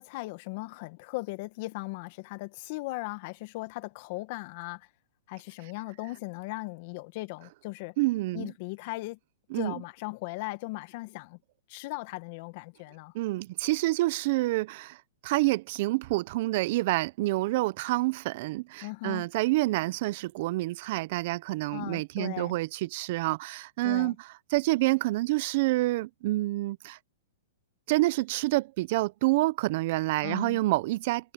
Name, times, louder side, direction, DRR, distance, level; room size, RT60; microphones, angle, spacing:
voice 1, 0.0-4.9 5.3-7.9 8.3-9.2 9.5-11.4 11.7-13.1 18.8-19.3 21.7-22.6 23.8-24.2 30.2-30.6, left 23 dB, 50° left, 1.8 m, -38 dB
voice 2, 8.0-8.5 9.5-9.7 13.1-15.0 15.2-24.1 24.5-27.0 27.9-31.3, right 19 dB, 50° right, 0.8 m, -28 dB
hypercardioid pair, 130°, 0 cm